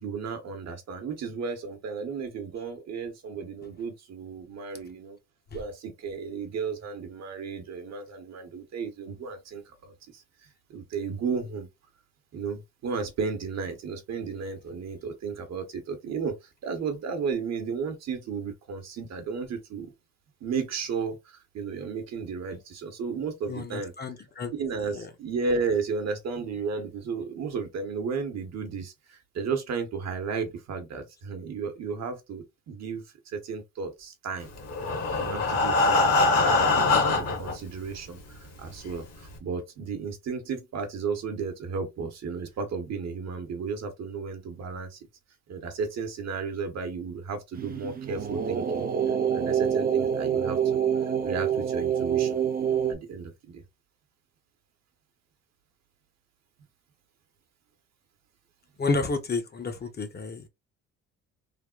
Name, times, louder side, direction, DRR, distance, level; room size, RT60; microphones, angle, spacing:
voice 1, 0.0-5.2 5.5-10.2 10.7-11.7 12.3-16.4 16.6-19.9 20.4-23.9 24.6-34.5 35.2-36.2 36.4-45.0 45.5-48.9 49.3-50.6 51.2-52.4 52.9-53.6, right 5 dB, 60° right, 0.9 m, -33 dB
voice 2, 23.5-24.5 24.9-25.1 58.8-60.5, left 3 dB, 35° left, 0.6 m, -30 dB
Breathing, 34.6-37.5 38.3-38.4 38.8-38.9 39.3-39.4, left 3 dB, 55° left, 1.1 m, -23 dB
sound 1, 47.5-52.9, right 8 dB, 30° right, 0.5 m, -26 dB
3.4 x 2.1 x 2.3 m
cardioid pair, 90°, 30 cm